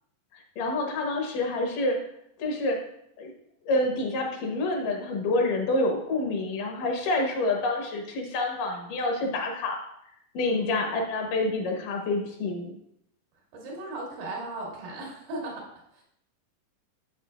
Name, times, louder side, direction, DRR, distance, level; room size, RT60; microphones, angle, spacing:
voice 1, 0.3-2.0 2.4-2.8 3.2-3.3 3.7-9.8 10.3-12.7, left 2 dB, 75° left, 1 dB, 2.7 m, -27 dB
voice 2, 10.4-10.8 13.5-15.7 15.9-16.0, right 2 dB, 85° right, -3 dB, 3.5 m, -37 dB
8.0 x 7.1 x 2.3 m, 0.75 s
omnidirectional pair, 3.8 m